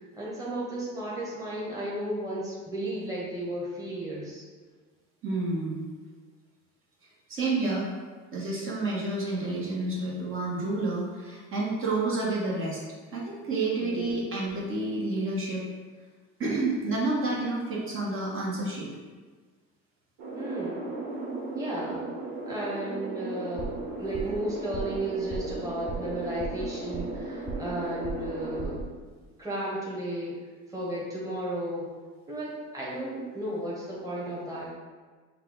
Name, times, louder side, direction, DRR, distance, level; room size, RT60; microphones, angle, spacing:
voice 1, 0.0-4.4 13.8-14.2 20.3-20.8 21.5-22.1 22.5-28.8 29.4-30.3 30.7-31.9 32.3-34.7, right 1 dB, 10° right, -6 dB, 1.2 m, -34 dB
voice 2, 5.2-5.8 7.3-7.9 8.3-12.8 13.1-15.6 16.4-18.9, right 2 dB, 45° right, -5 dB, 1.3 m, -29 dB
sound 1, 20.2-28.8, right 3 dB, 90° right, 1.2 m, -36 dB
sound 2, 23.6-23.9 24.1-24.4 24.7-25.0 25.3-25.6 25.9-26.1 26.4-27.2 27.5-27.8 28.0-28.3 28.6-28.9, right 3 dB, 15° left, 0.6 m, -37 dB
5.6 x 2.3 x 3.8 m, 1.4 s
cardioid pair, 115°, 29 cm